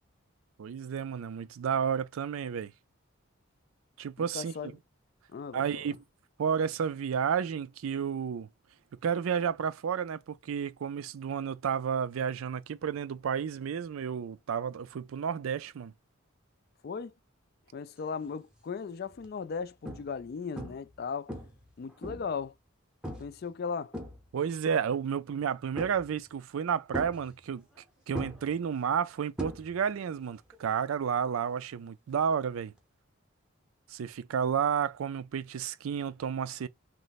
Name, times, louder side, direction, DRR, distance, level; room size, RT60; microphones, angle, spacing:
voice 1, 0.6-2.7 4.0-4.5 5.5-6.0 6.4-8.5 9.0-15.9 24.3-27.6 28.1-32.7 33.9-36.7, right 7 dB, 80° right, 0.4 m, -31 dB
voice 2, 4.3-4.7 5.3-5.8 16.8-17.1 17.7-21.3 21.8-22.5 23.2-23.9, left 5 dB, 50° left, 0.3 m, -37 dB
sound 1, 18.2-18.5 19.1-19.3 19.8-20.3 20.6-21.0 21.3-22.4 23.0-23.4 23.7-24.6 25.8-26.3 26.9-27.8 28.1-30.0 30.3-30.7 32.8-32.9, equal, 5° right, 0.7 m, -40 dB
3.1 x 2.1 x 4.0 m
head